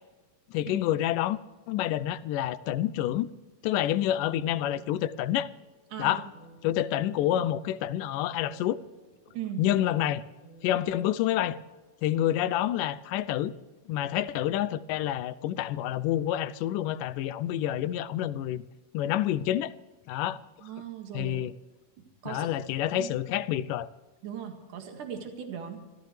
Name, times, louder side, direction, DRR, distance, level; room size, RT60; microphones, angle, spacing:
voice 1, 0.5-1.4 1.7-3.3 3.6-5.5 6.0-6.3 6.6-8.8 9.6-10.2 10.6-11.6 12.0-13.5 13.9-18.6 18.9-19.7 20.1-20.4 21.1-21.5 22.3-23.9, left 12 dB, 85° left, 2.3 m, -28 dB
sound 1, 4.0-12.1, right 1 dB, 45° right, 8.3 m, -56 dB
voice 2, 20.6-21.4 22.2-22.5 22.9-23.1 24.2-25.8, right 9 dB, 75° right, 3.4 m, -38 dB
26.0 x 15.0 x 3.3 m
omnidirectional pair, 3.7 m